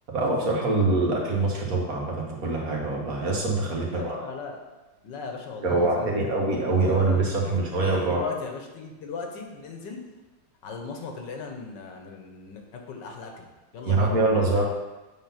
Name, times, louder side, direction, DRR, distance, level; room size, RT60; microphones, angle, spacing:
voice 1, 0.1-4.2 5.6-8.3 13.8-14.6, right 2 dB, 50° right, -2 dB, 1.8 m, -24 dB
voice 2, 3.8-4.6 5.0-6.1 6.6-10.1 10.6-14.2, left 4 dB, 75° left, 3 dB, 1.6 m, -38 dB
8.1 x 3.9 x 5.8 m, 1.1 s
omnidirectional pair, 2.0 m